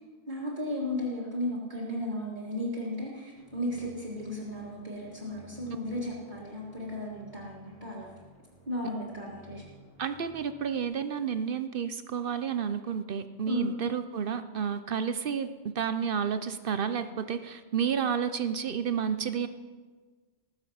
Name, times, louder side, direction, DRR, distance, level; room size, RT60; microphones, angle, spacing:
voice 1, 0.3-8.1 8.7-9.6 13.5-13.7, left 1 dB, 45° right, -5 dB, 2.1 m, -34 dB
sound 1, 3.3-10.8, right 2 dB, 45° left, 5.3 m, -56 dB
voice 2, 10.0-19.5, right 7 dB, 60° right, 11 dB, 0.8 m, -31 dB
19.5 x 7.1 x 5.7 m, 1.4 s
omnidirectional pair, 1.1 m